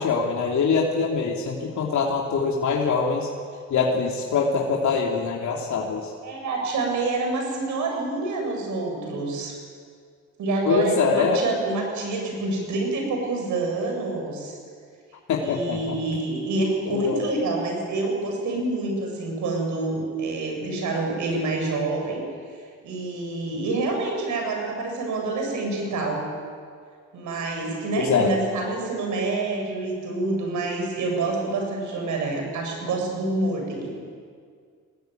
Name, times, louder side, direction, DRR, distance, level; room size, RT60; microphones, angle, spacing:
voice 1, 0.0-3.3 3.7-6.0 10.7-11.4 15.3-16.0 16.9-17.2 28.0-28.3, left 5 dB, 75° left, -2 dB, 3.0 m, -23 dB
voice 2, 6.2-9.6 10.4-14.6 15.4-22.2 22.8-26.2 27.1-33.9, right 3 dB, 85° right, 2 dB, 7.1 m, -27 dB
22.5 x 19.5 x 9.3 m, 2.1 s
cardioid pair, 80°, 29 cm